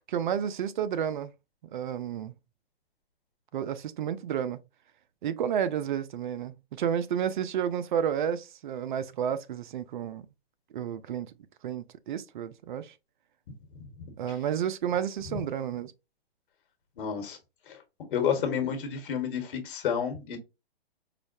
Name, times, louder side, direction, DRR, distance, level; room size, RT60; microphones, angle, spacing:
voice 1, 0.1-1.3 1.7-2.3 3.5-4.6 5.2-10.3 10.7-11.3 11.6-12.9 14.2-15.9, right 9 dB, 50° right, 0.5 m, -31 dB
voice 2, 17.0-17.4 17.7-17.8 18.1-20.4, left 7 dB, 55° left, 1.4 m, -30 dB
4.9 x 2.1 x 2.6 m
hypercardioid pair, 140°, 32 cm